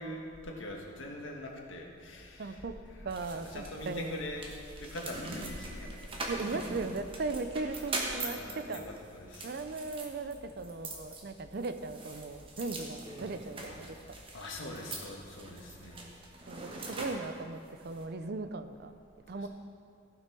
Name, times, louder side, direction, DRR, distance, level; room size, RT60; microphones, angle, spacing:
voice 1, 0.0-2.6 3.1-3.2 3.5-4.4 4.8-6.6 8.2-9.5 13.6-13.7 14.3-16.0 16.8-16.9 19.4-19.5, left 1 dB, 80° left, 0 dB, 1.6 m, -43 dB
sound 1, 2.0-16.1, equal, 10° right, 2.3 m, -59 dB
voice 2, 2.4-2.7 3.0-4.2 6.3-8.8 9.4-14.2 16.5-18.9 19.3-19.5, right 3 dB, 55° right, 10 dB, 0.5 m, -38 dB
sound 2, 2.6-8.2, left 1 dB, 35° left, 0.8 m, -52 dB
sound 3, 3.1-18.0, right 2 dB, 25° right, 1.2 m, -43 dB
15.0 x 6.0 x 4.5 m, 2.4 s
head